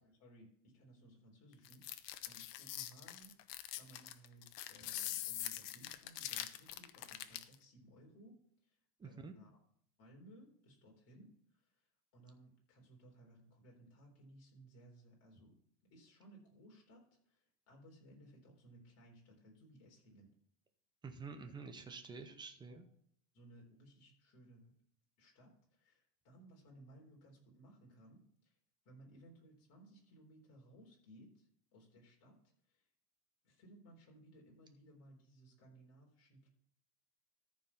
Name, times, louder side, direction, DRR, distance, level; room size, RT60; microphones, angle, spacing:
voice 1, 0.0-9.6 10.0-11.8 12.1-15.6 15.9-20.3 21.4-21.5 22.1-22.2 22.7-22.8 23.3-24.7 25.2-28.5 28.8-32.9 33.4-36.5, right 1 dB, 30° left, -1 dB, 4.0 m, -61 dB
sound 1, 1.7-7.6, left 13 dB, 75° left, 1.0 m, -44 dB
voice 2, 9.0-9.4 21.0-22.8, right 4 dB, 10° right, 6 dB, 0.6 m, -49 dB
13.5 x 4.7 x 5.6 m, 0.66 s
supercardioid pair, 150°, 48 cm